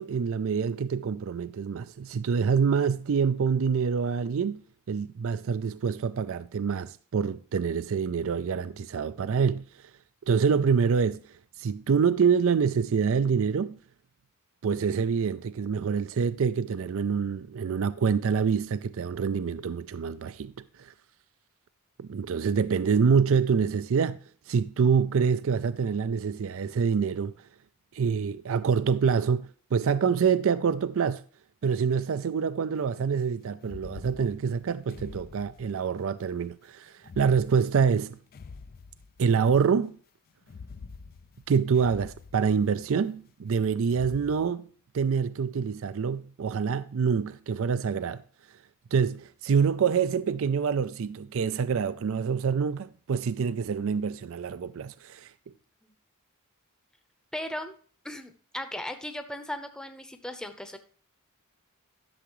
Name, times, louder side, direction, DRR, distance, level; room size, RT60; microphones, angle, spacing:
voice 1, 0.0-4.6 4.9-9.7 10.3-11.2 11.6-13.8 14.6-20.5 20.8-20.9 22.0-24.2 24.5-27.3 27.9-31.2 31.6-38.2 39.2-40.0 41.5-44.7 44.9-48.2 48.9-55.3, right 6 dB, 65° right, 0.4 m, -26 dB
sound 1, 33.6-36.0 37.0-39.6 40.4-43.0 43.8-44.5, left 4 dB, 40° left, 0.4 m, -47 dB
voice 2, 57.3-57.7 58.0-60.8, left 1 dB, 5° left, 0.8 m, -37 dB
12.0 x 6.9 x 3.1 m
head